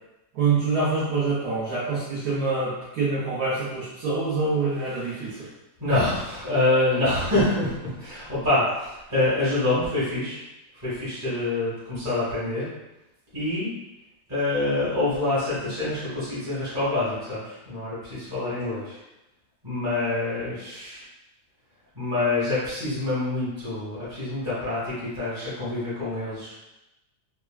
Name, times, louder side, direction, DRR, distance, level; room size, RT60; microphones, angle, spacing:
voice 1, 0.3-5.5, right 4 dB, 65° right, -10 dB, 1.2 m, -26 dB
voice 2, 5.2-5.5 5.8-10.4 10.7-12.6 13.3-13.7 14.3-19.0 19.6-21.0 21.9-26.5, left 2 dB, 15° right, -12 dB, 0.8 m, -26 dB
3.4 x 2.4 x 2.2 m, 0.96 s
omnidirectional pair, 1.8 m